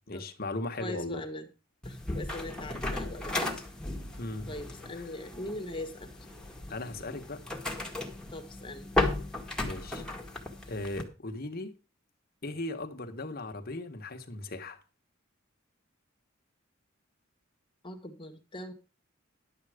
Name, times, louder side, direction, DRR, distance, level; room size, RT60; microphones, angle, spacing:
voice 1, 0.1-1.2 4.2-4.5 4.9-5.1 6.7-7.4 9.6-10.0 10.7-11.7 12.4-14.8, left 2 dB, 50° left, 1.4 m, -37 dB
voice 2, 0.8-1.5 1.8-3.6 4.5-6.1 8.3-8.9 17.8-18.7, left 1 dB, 25° left, 1.5 m, -41 dB
sound 1, 1.8-11.0, left 2 dB, 5° left, 1.9 m, -35 dB
11.0 x 7.9 x 5.0 m
head